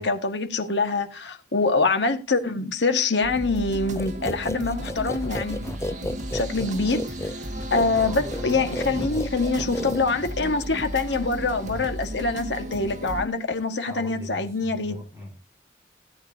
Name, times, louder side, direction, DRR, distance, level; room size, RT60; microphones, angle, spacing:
voice 1, 0.0-5.6 5.9-6.1 6.3-7.3 7.7-15.0, left 3 dB, 85° left, 1.6 m, -25 dB
sound 1, 3.2-13.2, right 1 dB, 45° right, 1.8 m, -34 dB
sound 2, 4.0-10.5, left 1 dB, 15° left, 0.5 m, -33 dB
voice 2, 7.8-9.3 11.6-11.9 13.8-15.4, left 1 dB, 15° right, 4.1 m, -40 dB
17.5 x 9.2 x 2.7 m
head